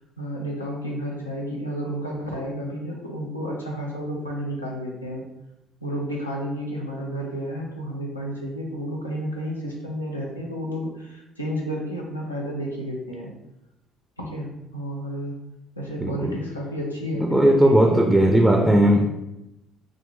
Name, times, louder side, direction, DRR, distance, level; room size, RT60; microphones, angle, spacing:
voice 1, 0.0-5.2 5.8-13.3 14.2-15.3 15.8-18.0, equal, 85° left, -2 dB, 0.5 m, -31 dB
voice 2, 16.0-16.4 17.2-19.1, right 1 dB, 5° right, 1 dB, 0.4 m, -17 dB
3.7 x 2.2 x 3.3 m, 0.90 s
figure-of-eight pair, 50°, 0 cm